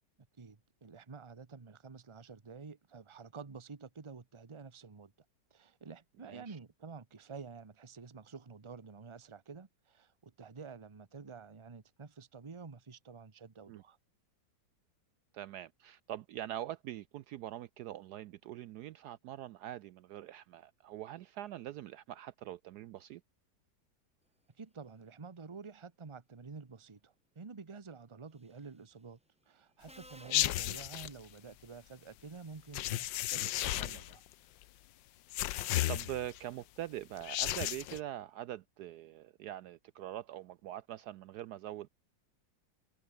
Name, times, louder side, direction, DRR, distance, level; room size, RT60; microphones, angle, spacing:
voice 1, 0.4-5.1 5.5-14.0 24.6-29.2 29.5-34.2, right 5 dB, 20° right, 0.9 m, -50 dB
voice 2, 6.2-6.6 13.7-13.8 15.3-23.2 30.2-30.5 33.7-34.0 35.6-41.9, right 13 dB, 70° right, 1.0 m, -44 dB
Subway metro underground, 28.4-28.7 29.9-31.6, equal, 5° right, 1.6 m, -58 dB
sound 1, 30.3-31.1 32.7-34.1 35.3-36.4 37.2-38.0, left 14 dB, 80° left, 1.4 m, -33 dB
omnidirectional pair, 2.0 m